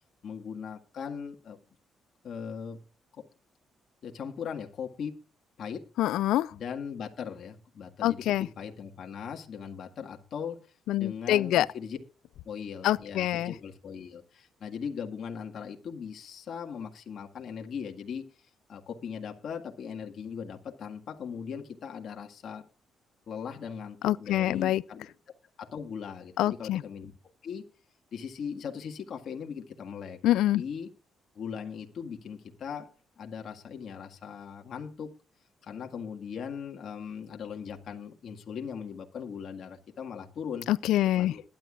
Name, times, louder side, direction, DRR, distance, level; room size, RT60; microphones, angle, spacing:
voice 1, 0.2-1.6 2.2-2.8 3.2-3.3 4.0-5.2 5.6-5.9 6.5-10.7 11.0-12.0 12.5-22.7 23.3-25.1 25.6-27.1 27.4-27.6 28.1-30.2 30.6-30.9 31.4-32.9 33.2-35.1 35.6-40.7 41.2-41.4, left 7 dB, 65° left, 1.8 m, -39 dB
voice 2, 6.0-6.5 8.0-8.5 10.9-11.7 12.8-13.5 24.0-24.8 26.4-26.8 30.2-30.6 40.7-41.3, left 14 dB, 85° left, 0.5 m, -25 dB
21.0 x 10.5 x 2.5 m
cardioid pair, 85°, 0 cm